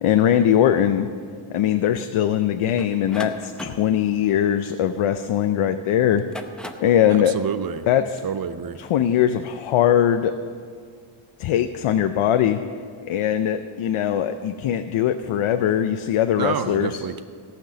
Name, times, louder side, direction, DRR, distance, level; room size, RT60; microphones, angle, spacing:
voice 1, 0.0-1.1 1.5-6.2 6.8-7.4 7.9-8.0 8.9-10.3 11.4-12.6 13.0-16.9, left 10 dB, 75° left, 9 dB, 0.6 m, -21 dB
sound 1, 2.8-5.5 6.1-7.0, left 1 dB, ahead, 0.7 m, -38 dB
voice 2, 7.1-7.9 8.2-8.8 16.3-17.2, right 7 dB, 50° right, 12 dB, 0.5 m, -28 dB
17.5 x 6.0 x 6.8 m, 2.1 s
wide cardioid pair, 125°, 50 cm